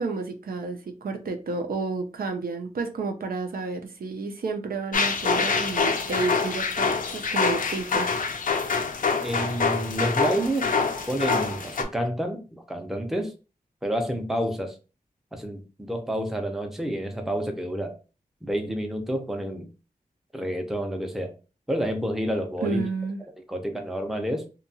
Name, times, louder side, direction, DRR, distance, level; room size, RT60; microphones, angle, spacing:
voice 1, 0.0-8.1 22.6-23.2, right 3 dB, 80° right, 5 dB, 0.5 m, -31 dB
sound 1, 4.9-11.8, left 5 dB, 65° left, 0.4 m, -25 dB
voice 2, 9.2-10.7 11.1-13.3 13.8-14.7 15.3-18.0 18.4-19.7 20.3-21.4 21.7-22.8 23.5-24.4, equal, ahead, 4 dB, 0.5 m, -29 dB
2.7 x 2.2 x 2.6 m, 0.33 s
wide cardioid pair, 75°, 15 cm